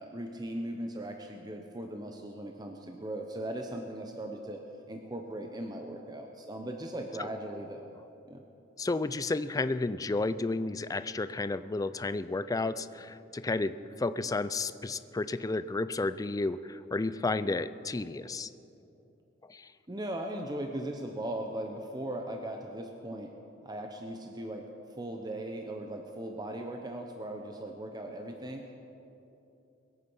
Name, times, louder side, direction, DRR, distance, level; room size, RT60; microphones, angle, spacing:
voice 1, 0.0-4.6 4.9-7.8 8.2-8.4 13.7-14.0 19.9-23.3 23.6-28.7, right 1 dB, 20° right, 3 dB, 0.8 m, -38 dB
voice 2, 8.8-13.7 14.0-18.5 19.5-19.7, left 3 dB, 20° left, 13 dB, 0.4 m, -32 dB
22.0 x 8.4 x 5.5 m, 2.9 s
head